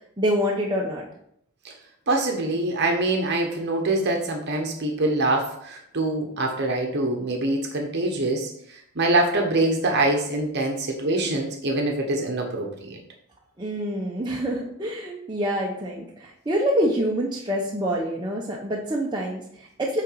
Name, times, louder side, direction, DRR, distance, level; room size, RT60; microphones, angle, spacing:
voice 1, 0.2-1.0 13.6-20.0, equal, 20° right, -3 dB, 0.8 m, -26 dB
voice 2, 2.1-13.0, right 2 dB, 50° right, 2 dB, 1.0 m, -24 dB
8.9 x 3.9 x 4.6 m, 0.71 s
head